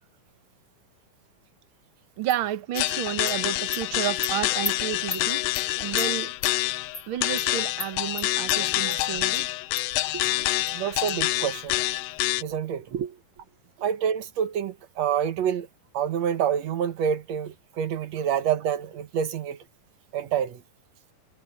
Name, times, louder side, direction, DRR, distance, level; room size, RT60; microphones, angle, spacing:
voice 1, 2.2-5.5 5.8-6.3 7.1-9.5 10.1-10.4 12.4-12.5 12.9-13.2, right 11 dB, 80° right, 1.1 m, -31 dB
Animal, 2.3-2.4 2.8-2.9 3.3-3.4 3.7-3.8 4.2-4.3 4.6-4.7 5.1-5.2 5.5-5.7 6.0-6.1 6.4-6.5 6.9-7.1 7.4-7.5 7.8-7.9 8.2-8.6 8.9-9.0 9.3-9.4 9.8-9.9 10.2-10.3 10.7-10.8 11.1-11.2, left 3 dB, 20° left, 2.2 m, -34 dB
sound 1, 2.8-12.4, left 18 dB, 85° left, 2.4 m, -27 dB
voice 2, 10.7-11.8 12.4-12.9 13.8-15.7 15.9-19.6 20.1-20.6, right 8 dB, 60° right, 2.2 m, -27 dB
omnidirectional pair, 4.0 m